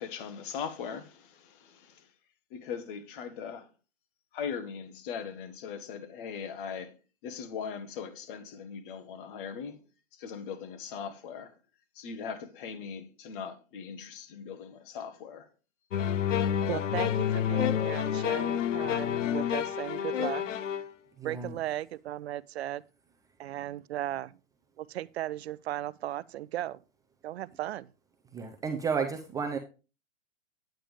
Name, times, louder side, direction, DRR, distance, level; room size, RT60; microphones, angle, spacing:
voice 1, 0.0-2.0 2.5-3.7 4.3-6.9 7.2-9.8 10.1-11.5 11.9-15.5, left 7 dB, 45° left, 1.5 m, -40 dB
sound 1, 15.9-20.9, left 9 dB, 80° left, 0.9 m, -29 dB
voice 2, 16.7-20.6 21.2-22.8 23.4-24.4 24.8-26.8 27.2-27.9, right 13 dB, 60° right, 0.5 m, -36 dB
voice 3, 21.2-21.5 28.3-29.6, right 5 dB, 10° right, 0.5 m, -32 dB
8.9 x 8.9 x 3.4 m
hypercardioid pair, 140°, 37 cm